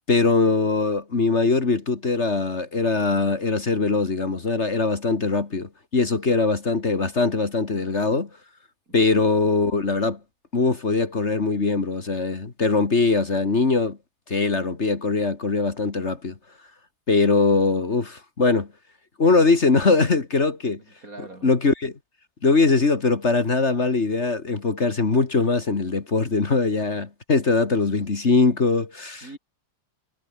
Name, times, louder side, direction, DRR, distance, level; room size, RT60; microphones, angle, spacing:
voice 1, 0.1-8.3 8.9-10.2 10.5-14.0 14.3-16.3 17.1-18.7 19.2-20.8 21.4-21.9 22.4-29.3, left 3 dB, 45° left, 2.3 m, -21 dB
voice 2, 20.8-21.5 29.2-29.4, right 2 dB, 60° right, 5.8 m, -43 dB
omnidirectional pair, 1.7 m